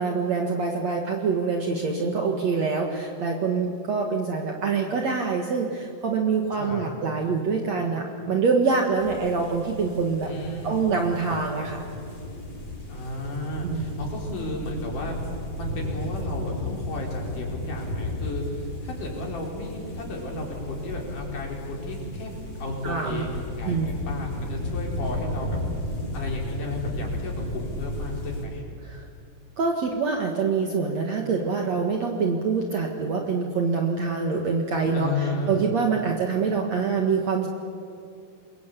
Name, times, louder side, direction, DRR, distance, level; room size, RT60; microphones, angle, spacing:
voice 1, 0.0-10.3 10.6-11.8 13.6-14.0 22.8-23.2 23.7-24.0 28.8-29.0 29.6-37.5, right 5 dB, 55° right, 2 dB, 2.7 m, -25 dB
voice 2, 6.5-6.8 10.2-10.9 12.9-15.2 15.5-22.3 22.6-25.5 26.1-28.6 34.9-35.6, left 2 dB, 60° left, 0 dB, 5.9 m, -33 dB
sound 1, 9.0-28.5, left 1 dB, 30° left, 6.4 m, -34 dB
27.0 x 23.0 x 8.6 m, 2.5 s
omnidirectional pair, 4.2 m